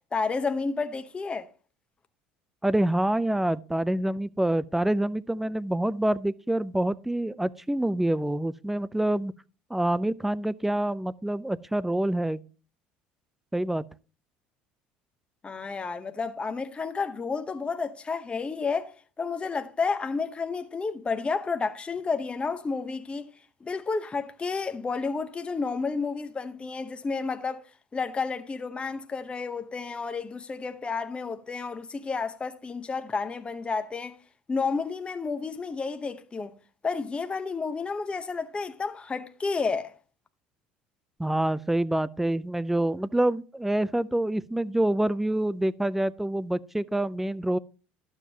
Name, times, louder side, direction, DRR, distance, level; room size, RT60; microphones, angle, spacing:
voice 1, 0.1-1.5 15.4-18.9 19.2-23.3 23.6-27.6 27.9-34.2 34.5-36.5 36.8-39.9, left 4 dB, 20° left, 0.7 m, -31 dB
voice 2, 2.6-9.3 9.7-12.4 13.5-13.8 41.2-47.6, right 1 dB, 5° right, 0.4 m, -26 dB
12.0 x 7.2 x 2.8 m
hypercardioid pair, 85°, 5 cm